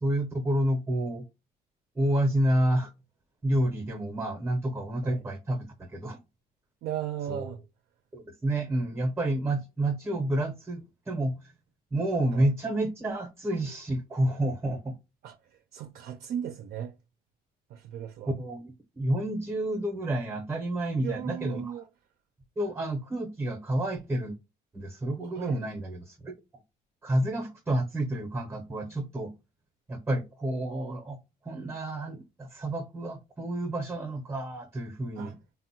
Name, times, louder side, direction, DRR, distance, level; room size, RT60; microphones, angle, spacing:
voice 1, 0.0-1.3 1.9-2.9 3.4-6.2 7.3-7.5 8.1-11.5 11.9-14.9 18.3-21.8 22.6-24.4 24.7-26.3 27.0-29.3 29.9-31.2 31.4-35.4, right 1 dB, 15° right, 0.6 m, -29 dB
voice 2, 6.8-7.6 12.3-12.5 15.2-15.3 15.7-16.9 17.7-18.3 21.0-21.9 25.2-25.6 35.2-35.3, right 10 dB, 65° right, 0.4 m, -36 dB
3.5 x 2.1 x 2.7 m
cardioid pair, 110°, 17 cm